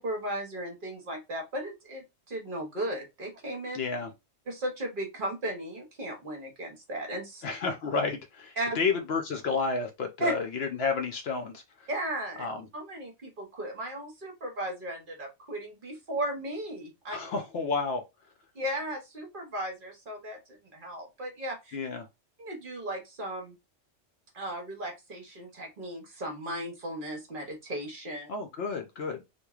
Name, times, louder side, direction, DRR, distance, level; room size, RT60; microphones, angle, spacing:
voice 1, 0.0-3.8 4.5-7.4 8.6-8.8 10.2-10.3 11.9-12.5 12.7-17.2 18.5-20.4 20.7-21.8 22.4-23.6 24.3-28.3, right 1 dB, 50° right, 0.9 m, -35 dB
voice 2, 3.7-4.1 7.4-11.9 12.4-12.7 17.1-18.0 21.7-22.1 28.3-29.2, left 4 dB, 65° left, 0.7 m, -31 dB
2.9 x 2.3 x 2.3 m
omnidirectional pair, 1.3 m